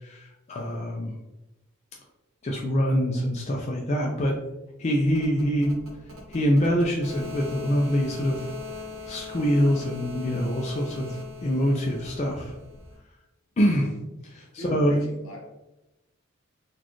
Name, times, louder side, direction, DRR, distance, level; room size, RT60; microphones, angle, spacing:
voice 1, 0.5-1.1 2.4-4.4 4.8-5.7 6.3-8.4 9.1-11.2 11.4-12.5 13.6-13.9 14.3-15.0, equal, 30° left, -1 dB, 0.3 m, -24 dB
sound 1, 5.1-13.0, left 3 dB, 80° right, 1.0 m, -40 dB
voice 2, 14.6-15.4, equal, 80° left, -1 dB, 1.0 m, -39 dB
4.0 x 2.3 x 3.0 m, 0.97 s
head